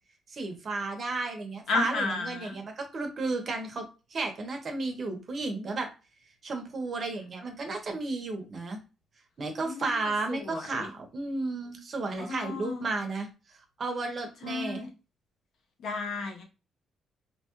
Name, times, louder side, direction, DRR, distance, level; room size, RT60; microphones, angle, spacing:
voice 1, 0.3-3.8 4.1-5.9 6.4-8.8 9.4-13.3 13.8-14.8, right 3 dB, 45° right, 4 dB, 0.9 m, -33 dB
voice 2, 1.7-2.5 9.6-10.0 10.3-10.9 12.3-12.9 14.4-14.9 15.8-16.4, left 4 dB, 70° left, 2 dB, 0.8 m, -33 dB
2.9 x 2.2 x 3.0 m, 0.30 s
cardioid pair, 90°, 0 cm